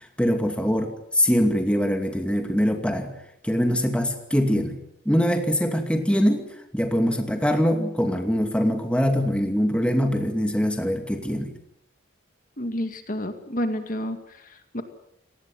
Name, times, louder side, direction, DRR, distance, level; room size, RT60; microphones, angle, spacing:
voice 1, 0.2-3.1 3.4-4.8 5.1-6.5 6.7-11.5, equal, 5° left, 4 dB, 2.5 m, -23 dB
voice 2, 12.6-14.8, equal, 45° left, 7 dB, 2.3 m, -30 dB
29.5 x 19.5 x 7.8 m, 0.77 s
head